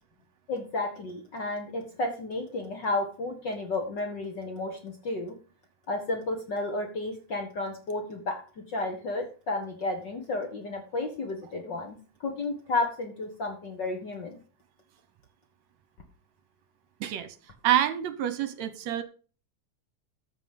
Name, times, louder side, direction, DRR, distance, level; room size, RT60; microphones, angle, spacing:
voice 1, 0.5-5.4 5.9-8.4 8.7-14.4, left 2 dB, 45° left, 4 dB, 1.6 m, -32 dB
voice 2, 17.0-17.3 17.6-19.0, right 11 dB, 70° right, 12 dB, 2.0 m, -27 dB
13.5 x 5.3 x 5.1 m, 0.37 s
omnidirectional pair, 3.5 m